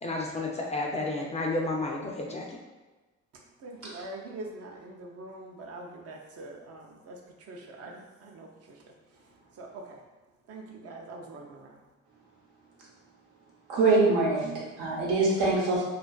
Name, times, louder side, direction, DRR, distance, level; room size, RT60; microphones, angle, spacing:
voice 1, 0.0-2.6, left 2 dB, 25° left, -1 dB, 0.3 m, -31 dB
voice 2, 3.6-7.2 7.5-8.8 9.6-10.0 10.5-11.8, right 2 dB, 55° right, 0 dB, 0.5 m, -43 dB
voice 3, 13.7-15.8, right 3 dB, 85° right, -5 dB, 0.9 m, -24 dB
2.4 x 2.3 x 2.2 m, 1.2 s
cardioid pair, 90°, 30 cm